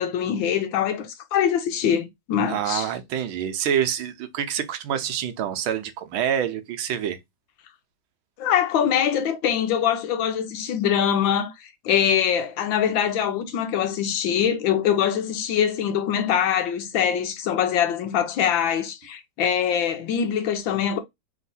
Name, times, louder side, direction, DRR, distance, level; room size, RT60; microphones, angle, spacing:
voice 1, 0.0-2.9 8.4-21.0, left 9 dB, 70° left, 1.4 m, -23 dB
voice 2, 2.5-7.2, right 9 dB, 75° right, 1.5 m, -27 dB
3.6 x 3.1 x 4.0 m
omnidirectional pair, 2.3 m